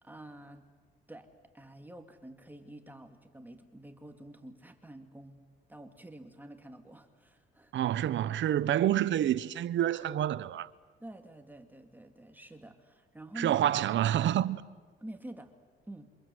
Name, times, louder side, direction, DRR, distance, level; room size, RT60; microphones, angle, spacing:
voice 1, 0.0-0.7 1.1-5.4 5.7-7.7 11.0-13.8 15.0-15.5 15.9-16.1, right 1 dB, 10° right, 2.4 m, -48 dB
voice 2, 7.7-10.7 13.4-14.6, right 11 dB, 70° right, 1.0 m, -28 dB
28.0 x 25.5 x 7.9 m
cardioid pair, 90°, 20 cm